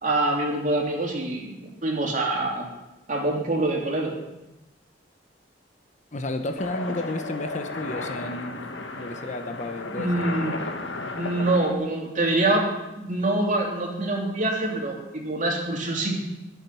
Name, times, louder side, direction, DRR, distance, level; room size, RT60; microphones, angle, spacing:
voice 1, 0.0-2.6 3.1-4.1 9.9-10.5 11.1-12.7 13.0-16.2, right 2 dB, 45° right, 0 dB, 2.9 m, -25 dB
voice 2, 6.1-8.6 9.0-10.3, left 2 dB, 40° left, 7 dB, 1.0 m, -32 dB
sound 1, 6.6-11.7, left 2 dB, 90° left, 1.6 m, -34 dB
21.0 x 7.3 x 5.8 m, 0.97 s
head